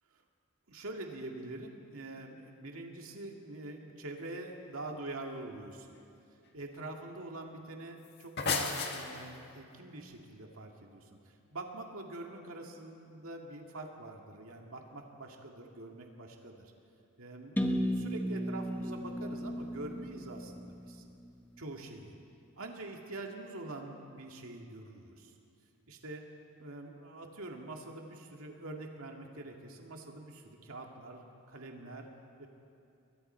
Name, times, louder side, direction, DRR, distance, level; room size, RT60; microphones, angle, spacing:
voice 1, 0.7-6.0 6.5-16.7 17.2-21.0 21.6-22.1 22.6-25.3 25.9-26.2 26.6-32.1 32.4-32.5, right 2 dB, 70° right, 1 dB, 2.1 m, -45 dB
sound 1, 8.0-9.6, left 5 dB, 50° left, 1.8 m, -34 dB
sound 2, 17.6-21.4, equal, 10° left, 1.2 m, -35 dB
30.0 x 22.5 x 4.5 m, 2.6 s
head